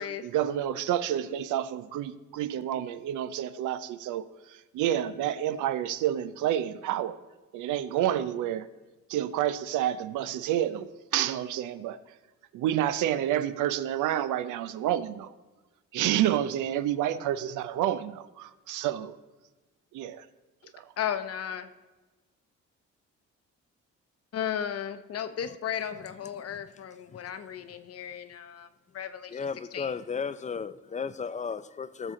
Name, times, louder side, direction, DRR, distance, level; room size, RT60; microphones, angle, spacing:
voice 1, 0.0-7.2 7.5-8.7 9.1-12.0 12.5-15.3 15.9-19.1 19.9-20.3 20.7-20.9, right 11 dB, 85° right, 0.5 m, -29 dB
voice 2, 21.0-21.7 24.3-28.7 28.9-29.9, left 9 dB, 55° left, 0.7 m, -35 dB
voice 3, 29.3-32.1, left 6 dB, 25° left, 0.4 m, -34 dB
13.0 x 6.6 x 3.7 m
cardioid pair, 90°, 30 cm